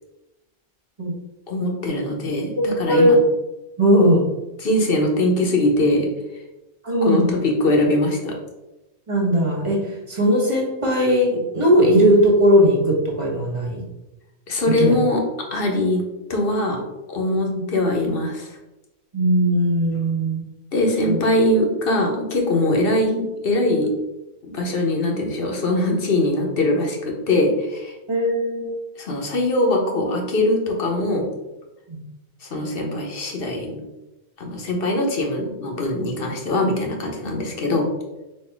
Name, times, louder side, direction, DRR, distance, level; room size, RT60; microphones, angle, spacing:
voice 1, 1.5-3.2 4.6-6.1 7.0-8.3 14.5-15.2 15.5-16.0 16.3-16.8 17.1-18.6 20.7-23.9 24.4-27.9 29.0-31.3 32.4-33.8 34.4-37.9, left 1 dB, 60° left, 1 dB, 1.1 m, -22 dB
voice 2, 2.6-3.2 3.8-4.3 6.8-7.4 9.1-13.8 14.8-15.0 17.5-17.6 19.1-20.4 21.0-21.2 28.1-28.7 31.9-32.0, equal, 30° right, -3 dB, 1.2 m, -18 dB
4.3 x 2.6 x 4.5 m, 1.0 s
omnidirectional pair, 1.1 m